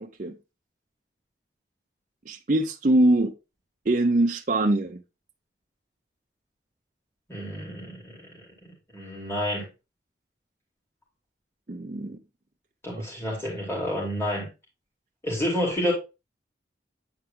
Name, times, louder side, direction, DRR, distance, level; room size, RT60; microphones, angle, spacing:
voice 1, 0.0-0.4 2.3-3.3 3.9-5.0 11.7-12.2, right 1 dB, 45° right, 0.6 m, -23 dB
voice 2, 7.3-8.2 8.9-9.6 12.8-14.5 15.2-15.9, equal, 15° left, 2.8 m, -29 dB
8.8 x 4.4 x 3.7 m
head